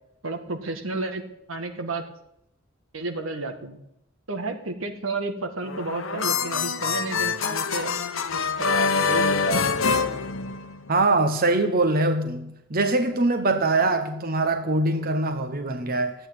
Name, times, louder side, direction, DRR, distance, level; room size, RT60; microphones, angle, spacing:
voice 1, 0.2-1.2 1.5-2.0 2.9-3.8 4.3-7.9 8.3-9.7, right 3 dB, 90° right, 1.9 m, -31 dB
sound 1, 5.6-11.0, left 5 dB, 75° left, 1.0 m, -25 dB
voice 2, 10.9-16.1, right 2 dB, 50° right, 1.2 m, -23 dB
14.0 x 9.0 x 9.4 m
head